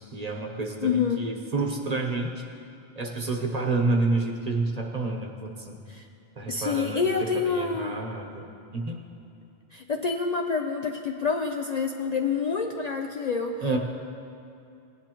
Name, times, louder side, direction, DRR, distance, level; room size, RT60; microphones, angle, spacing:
voice 1, 0.0-2.4 3.0-5.8 6.4-8.5 8.7-9.0 13.6-13.8, right 3 dB, 40° right, 1 dB, 1.0 m, -29 dB
voice 2, 0.8-1.2 5.9-6.1 6.5-8.0 9.7-13.6, left 5 dB, 50° left, 3 dB, 0.5 m, -27 dB
18.5 x 10.0 x 2.9 m, 2.7 s
omnidirectional pair, 1.1 m